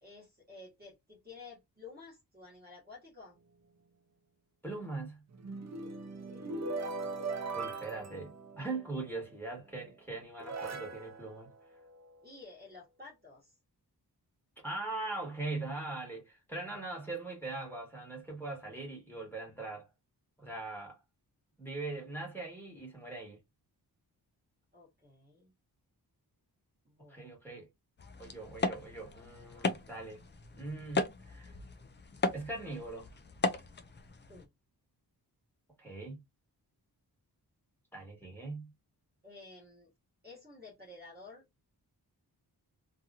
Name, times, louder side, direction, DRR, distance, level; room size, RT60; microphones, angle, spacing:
voice 1, 0.0-3.4 6.3-6.6 12.2-13.5 24.7-25.5 26.8-27.3 34.3-34.5 39.2-39.9 40.2-41.4, left 3 dB, 25° right, 1.1 m, -52 dB
voice 2, 4.6-5.2 7.5-11.5 14.6-19.9 20.4-21.0 21.6-23.4 27.1-27.7 28.2-30.2 30.5-31.5 32.3-33.1 35.8-36.2 37.9-38.7, right 3 dB, 5° left, 1.3 m, -41 dB
sound 1, 5.3-9.0 9.8-9.9 10.4-12.3, right 3 dB, 45° right, 0.5 m, -40 dB
sound 2, 28.0-34.5, left 3 dB, 30° left, 0.4 m, -37 dB
2.8 x 2.6 x 2.3 m
wide cardioid pair, 155°, 40 cm